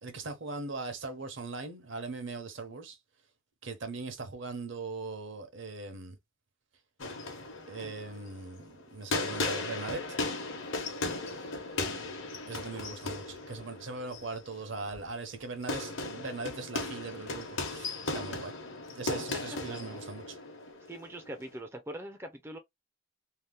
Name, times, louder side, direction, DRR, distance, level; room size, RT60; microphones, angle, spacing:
voice 1, 0.0-3.0 3.6-6.2 7.7-10.2 12.5-18.5 18.9-20.4, right 3 dB, 65° right, 0.8 m, -40 dB
sound 1, 7.0-21.6, left 3 dB, 75° left, 0.9 m, -37 dB
voice 2, 20.9-22.6, right 1 dB, 10° right, 0.4 m, -42 dB
2.8 x 2.0 x 3.3 m
head